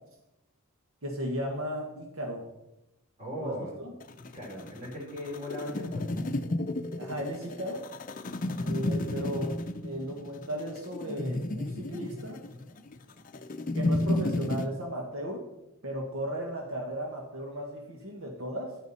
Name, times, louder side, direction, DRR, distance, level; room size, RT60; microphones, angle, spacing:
voice 1, 1.0-2.5 3.4-3.9 7.0-7.8 8.6-12.4 13.7-15.4 15.8-18.8, equal, 70° right, 1 dB, 1.6 m, -35 dB
voice 2, 3.2-3.7 4.3-6.1, left 1 dB, 30° right, -1 dB, 3.4 m, -38 dB
sound 1, 4.0-14.7, left 2 dB, 40° left, 0.6 m, -32 dB
10.5 x 9.4 x 4.2 m, 0.91 s
head